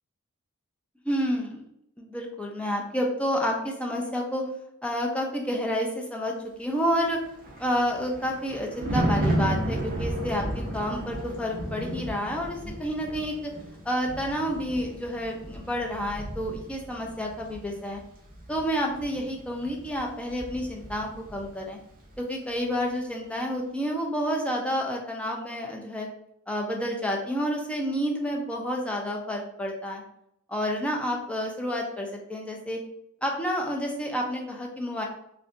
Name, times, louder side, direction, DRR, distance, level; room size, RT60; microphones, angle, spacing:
voice 1, 1.0-1.6 2.0-4.5 4.8-6.3 6.6-7.2 7.6-13.5 13.8-18.0 18.5-21.8 22.2-26.1 26.5-30.0 30.5-32.8 33.2-35.0, equal, 5° left, 0 dB, 0.4 m, -29 dB
Thunder, 7.0-21.6 21.9-22.2, right 1 dB, 40° right, 0.6 m, -33 dB
3.7 x 2.2 x 2.5 m, 0.77 s
head